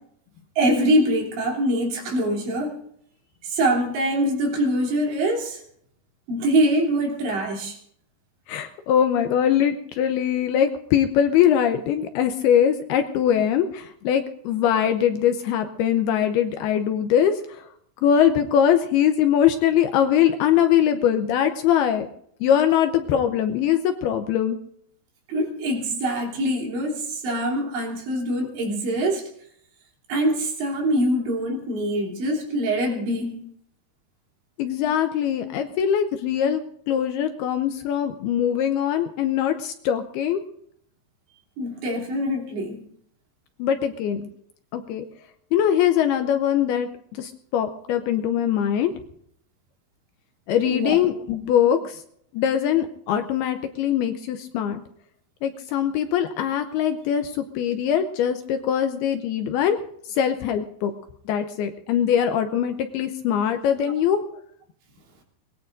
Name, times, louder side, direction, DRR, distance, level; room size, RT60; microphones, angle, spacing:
voice 1, 0.6-2.8 3.4-5.6 6.3-7.8 25.3-29.3 30.1-33.5 41.6-42.8 50.7-51.0, right 1 dB, 75° right, -1 dB, 5.6 m, -24 dB
voice 2, 8.5-17.7 18.0-22.1 22.4-24.6 34.6-40.4 43.6-44.3 44.7-45.1 45.5-48.9 50.5-52.0 52.3-54.8 55.4-59.8 60.1-60.9 61.3-64.2, left 9 dB, 80° left, 7 dB, 2.4 m, -22 dB
24.5 x 21.0 x 2.6 m, 0.68 s
omnidirectional pair, 5.2 m